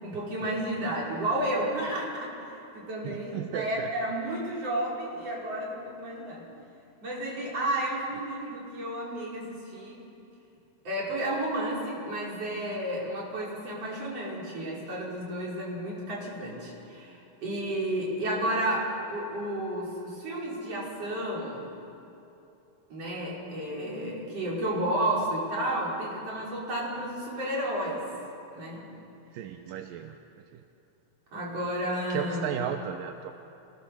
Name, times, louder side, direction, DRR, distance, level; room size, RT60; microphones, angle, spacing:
voice 1, 0.0-2.3 2.7-6.4 7.0-10.0 10.8-21.7 22.9-28.0 28.5-28.9 31.3-32.5, right 1 dB, 35° right, -5 dB, 5.8 m, -32 dB
voice 2, 3.0-3.9 29.3-30.1 30.5-30.6 32.1-33.3, right 9 dB, 75° right, 6 dB, 2.1 m, -35 dB
28.0 x 19.5 x 7.1 m, 2.8 s
omnidirectional pair, 4.8 m